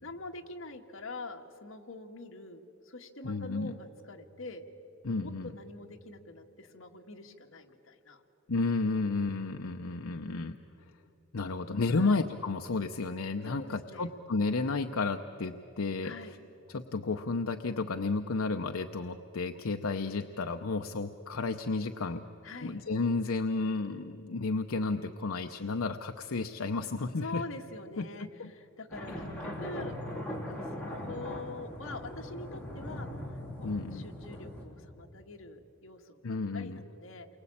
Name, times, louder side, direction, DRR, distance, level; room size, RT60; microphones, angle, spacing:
voice 1, 0.0-4.7 5.2-8.2 11.9-12.2 13.4-14.1 16.0-16.4 22.4-22.8 27.2-30.0 30.2-37.3, left 2 dB, 70° left, 3 dB, 1.9 m, -45 dB
voice 2, 3.2-3.7 5.0-5.5 8.5-10.6 11.3-16.1 16.7-22.2 22.6-27.4 28.0-28.5 33.6-34.1 36.2-36.8, left 3 dB, 85° left, 6 dB, 0.8 m, -32 dB
sound 1, 28.9-34.6, left 1 dB, 5° left, 4.1 m, -40 dB
29.0 x 23.5 x 8.7 m, 2.9 s
head